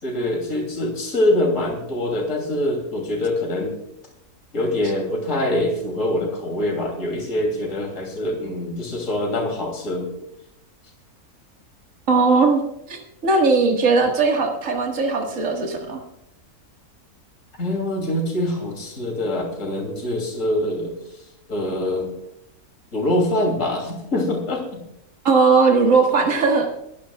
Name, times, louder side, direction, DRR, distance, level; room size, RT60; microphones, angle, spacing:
voice 1, 0.0-3.8 4.5-10.1 17.6-22.1 22.9-24.8, left 1 dB, 60° left, 1 dB, 3.2 m, -24 dB
voice 2, 12.1-12.6 12.9-16.0 25.2-26.7, right 4 dB, 60° right, 2 dB, 2.1 m, -18 dB
22.5 x 14.5 x 2.4 m, 0.81 s
omnidirectional pair, 1.5 m